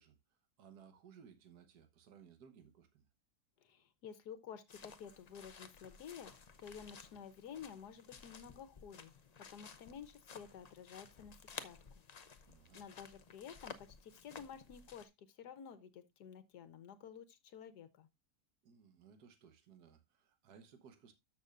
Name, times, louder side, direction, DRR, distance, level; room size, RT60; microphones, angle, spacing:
voice 1, 0.0-3.0 12.5-12.8 18.6-21.1, right 7 dB, 75° right, 1.7 m, -61 dB
voice 2, 3.6-9.1 9.4-11.8 12.7-18.1, left 7 dB, 80° left, 1.5 m, -52 dB
sound 1, 4.7-15.0, left 5 dB, 50° left, 0.4 m, -55 dB
13.0 x 6.3 x 2.5 m
omnidirectional pair, 1.7 m